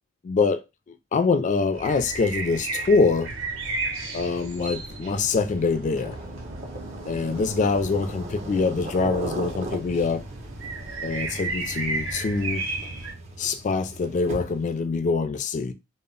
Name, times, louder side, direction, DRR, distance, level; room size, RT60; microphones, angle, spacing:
voice 1, 0.2-0.6 1.1-3.3 4.1-6.2 7.0-10.3 11.0-12.6 13.4-15.7, left 4 dB, 35° left, 0.3 m, -24 dB
sound 1, 1.7-13.1, right 3 dB, 70° right, 0.7 m, -34 dB
sound 2, 5.7-14.8, right 2 dB, 35° right, 0.5 m, -38 dB
2.0 x 2.0 x 3.7 m
head